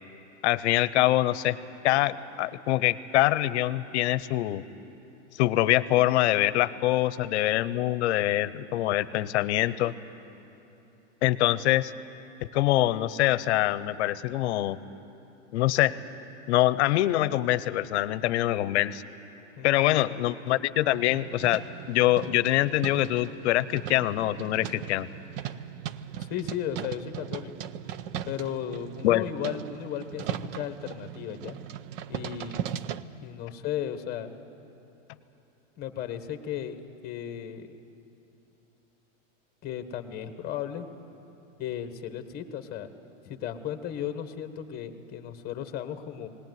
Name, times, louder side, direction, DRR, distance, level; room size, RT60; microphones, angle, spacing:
voice 1, 0.4-1.6 1.8-4.6 5.4-9.9 11.2-11.9 12.5-14.8 15.5-15.9 16.5-19.0 19.6-21.6 21.9-25.1 29.0-29.2, left 15 dB, 65° left, 16 dB, 0.8 m, -24 dB
voice 2, 19.6-20.2 26.2-27.5 28.3-31.6 32.1-32.6 33.2-34.3 35.8-37.8 39.6-40.9 41.6-42.9 43.2-46.3, left 9 dB, 25° left, 9 dB, 1.3 m, -35 dB
sound 1, 20.9-33.0, right 10 dB, 50° right, 0.7 m, -38 dB
19.0 x 19.0 x 9.4 m, 3.0 s
supercardioid pair, 150°, 37 cm